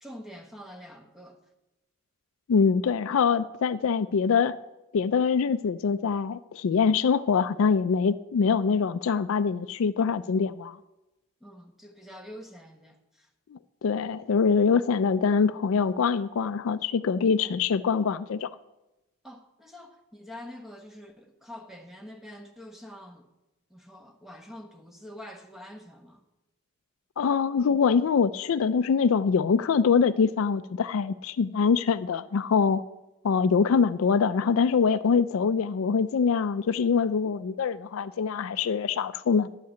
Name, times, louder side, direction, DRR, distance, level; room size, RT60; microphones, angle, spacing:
voice 1, 0.0-1.4 11.4-13.3 19.2-23.3 23.7-26.2, left 1 dB, ahead, 4 dB, 1.0 m, -46 dB
voice 2, 2.5-4.6 4.9-10.8 13.5-18.5 27.2-32.8 33.2-39.5, left 5 dB, 65° left, 14 dB, 0.4 m, -24 dB
11.0 x 5.7 x 7.5 m, 0.97 s
head